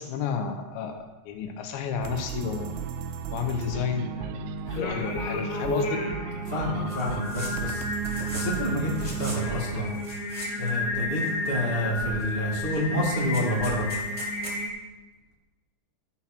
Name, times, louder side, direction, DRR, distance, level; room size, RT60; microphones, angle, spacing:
voice 1, 0.0-2.8 3.3-4.5 4.8-6.0, left 7 dB, 85° left, 5 dB, 3.4 m, -31 dB
sound 1, 2.0-9.8, right 7 dB, 80° right, 2.8 m, -34 dB
Singing, 4.7-14.7, left 2 dB, 55° left, 2.5 m, -32 dB
voice 2, 6.5-7.8 8.3-9.9 10.6-13.9, equal, 35° left, -2 dB, 0.9 m, -28 dB
sound 2, 6.9-7.5 7.8-8.6 8.9-9.4 9.9-10.8 11.1-11.7 12.1-12.3 12.6-14.6, right 1 dB, 10° right, 2.1 m, -41 dB
14.0 x 5.8 x 6.0 m, 1.1 s
omnidirectional pair, 5.0 m